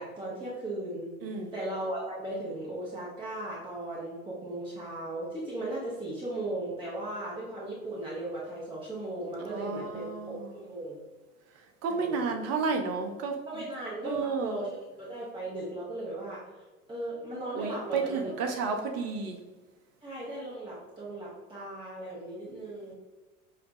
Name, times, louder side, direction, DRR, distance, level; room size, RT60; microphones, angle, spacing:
voice 1, 0.0-11.0 12.0-12.2 13.5-16.4 16.9-18.5 20.0-22.9, right 1 dB, 10° right, -6 dB, 0.9 m, -37 dB
voice 2, 1.2-1.5 9.4-10.3 11.8-13.4 14.0-14.6 17.6-19.4 22.9-23.0, right 4 dB, 35° right, 5 dB, 0.7 m, -31 dB
6.5 x 2.3 x 2.6 m, 1.2 s
hypercardioid pair, 80°, 43 cm